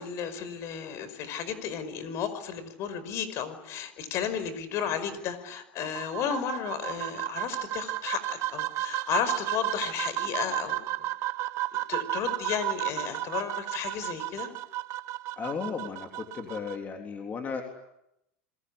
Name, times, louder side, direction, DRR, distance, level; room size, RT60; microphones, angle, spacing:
voice 1, 0.0-8.2 8.5-11.1 11.9-14.5, left 8 dB, 50° left, 13 dB, 5.3 m, -33 dB
sound 1, 5.8-16.8, right 16 dB, 50° right, 1.4 m, -33 dB
voice 2, 15.4-17.6, left 5 dB, 25° left, 3 dB, 3.7 m, -35 dB
27.0 x 22.0 x 9.9 m, 0.83 s
supercardioid pair, 125°, 6 cm